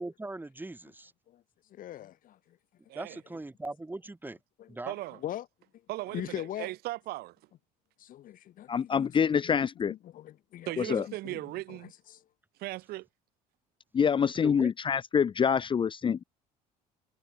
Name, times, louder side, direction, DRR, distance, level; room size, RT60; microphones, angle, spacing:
voice 1, 0.0-1.1 2.9-4.4 4.7-4.9 14.3-14.7, right 2 dB, 10° right, 3.0 m, -40 dB
voice 2, 1.7-2.4 4.6-4.7 5.2-5.4 6.1-6.7 8.0-9.1 9.4-9.6 9.9-10.9 11.2-11.4 11.7-11.8 12.1-12.2, left 12 dB, 55° left, 1.7 m, -40 dB
voice 3, 2.9-3.2 4.8-5.2 5.9-7.3 10.7-11.9 12.6-13.1, right 18 dB, 65° right, 1.8 m, -37 dB
voice 4, 8.7-9.9 10.8-11.0 13.9-16.2, left 7 dB, 30° left, 0.7 m, -26 dB
supercardioid pair, 95°, 17 cm